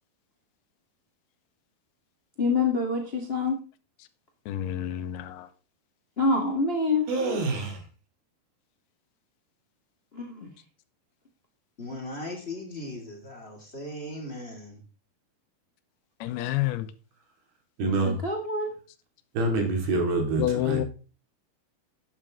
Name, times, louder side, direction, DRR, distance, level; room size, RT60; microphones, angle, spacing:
voice 1, 2.4-3.6 6.2-7.0 10.1-10.5 18.0-18.7, left 3 dB, 35° left, 0.9 m, -26 dB
voice 2, 4.5-5.5 16.2-16.9 20.4-20.8, left 13 dB, 85° left, 2.8 m, -28 dB
voice 3, 7.1-7.8 17.8-18.2 19.4-20.9, right 2 dB, 75° right, 4.5 m, -26 dB
voice 4, 11.8-14.8, left 1 dB, 20° left, 2.3 m, -38 dB
12.5 x 8.9 x 3.7 m
omnidirectional pair, 4.5 m